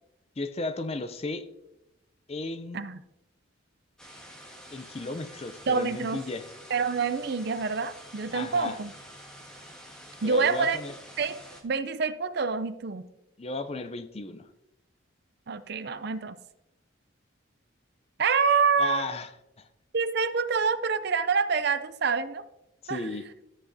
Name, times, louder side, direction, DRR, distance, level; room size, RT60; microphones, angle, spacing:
voice 1, 0.4-1.5 2.3-2.8 4.7-6.5 8.3-8.8 10.2-10.9 13.4-14.5 18.8-19.3 19.6-19.7 22.8-23.3, left 2 dB, 30° left, 10 dB, 0.5 m, -35 dB
sound 1, 4.0-11.6, equal, 5° left, 1.4 m, -48 dB
voice 2, 5.7-6.2 6.7-8.9 10.2-10.8 11.2-11.4 11.6-13.0 15.5-16.4 18.2-19.1 19.9-22.4 22.9-23.0, right 5 dB, 50° right, 13 dB, 0.5 m, -26 dB
13.0 x 8.0 x 2.7 m, 0.89 s
head